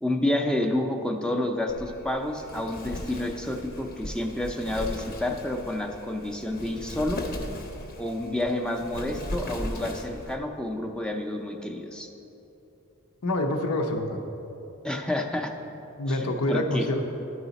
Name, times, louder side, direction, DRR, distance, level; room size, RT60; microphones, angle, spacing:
voice 1, 0.0-7.2 8.0-12.1 14.8-15.5 16.1-16.9, left 1 dB, 5° left, 2 dB, 0.4 m, -29 dB
Wind, 1.7-10.4, left 1 dB, 45° left, 0.7 m, -38 dB
voice 2, 13.2-14.2 16.0-17.1, left 1 dB, 80° left, 4 dB, 0.7 m, -26 dB
12.5 x 4.9 x 4.0 m, 3.0 s
head